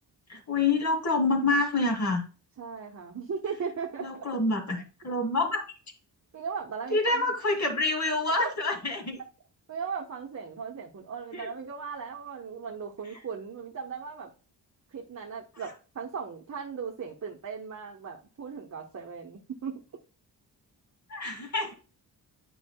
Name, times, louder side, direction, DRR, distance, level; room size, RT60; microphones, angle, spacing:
voice 1, 0.3-2.2 4.0-5.6 6.9-9.2 11.3-11.5 21.1-21.7, left 3 dB, 40° left, 3 dB, 2.1 m, -27 dB
voice 2, 2.6-4.3 6.3-7.3 8.3-8.5 9.7-14.3 14.9-19.7, right 6 dB, 40° right, -1 dB, 1.0 m, -37 dB
8.2 x 5.5 x 2.2 m, 0.35 s
cardioid pair, 70°, 43 cm